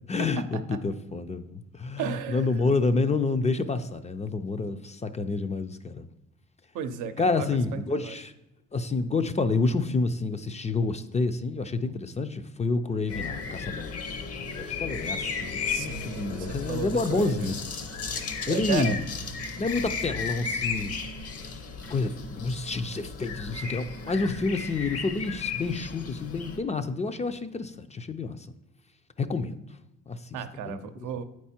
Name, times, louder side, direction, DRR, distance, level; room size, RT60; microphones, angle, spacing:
voice 1, 0.1-6.1 7.2-8.3 8.7-13.9 14.6-17.8 18.5-19.0 19.6-21.0 21.9-28.5 29.2-29.6 30.1-30.2 30.5-31.1, left 3 dB, 25° left, 10 dB, 0.4 m, -29 dB
voice 2, 2.0-2.7 6.7-8.1 15.7-17.6 18.1-19.0 30.3-31.2, right 8 dB, 90° right, 8 dB, 0.7 m, -34 dB
sound 1, 13.1-26.6, left 5 dB, 55° left, 0.9 m, -35 dB
8.5 x 4.7 x 4.3 m, 0.93 s
cardioid pair, 90°, 30 cm